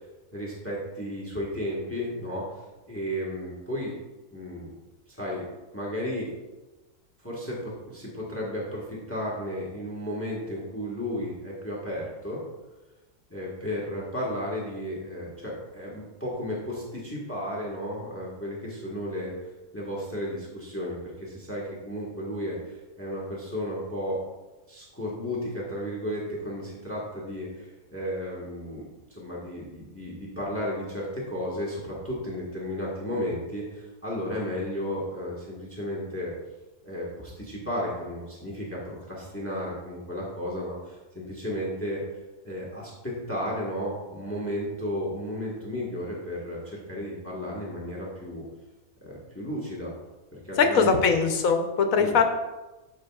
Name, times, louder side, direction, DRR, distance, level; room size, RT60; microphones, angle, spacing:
voice 1, 0.3-3.9 4.3-4.7 5.1-5.4 5.7-6.3 7.2-12.4 13.3-24.2 24.7-36.3 36.8-42.0 42.4-48.5 49.0-49.9 50.3-51.2 52.0-52.2, equal, 10° left, -4 dB, 1.4 m, -33 dB
voice 2, 50.6-52.2, left 5 dB, 80° left, 6 dB, 1.2 m, -21 dB
13.0 x 5.1 x 2.4 m, 1.1 s
omnidirectional pair, 1.4 m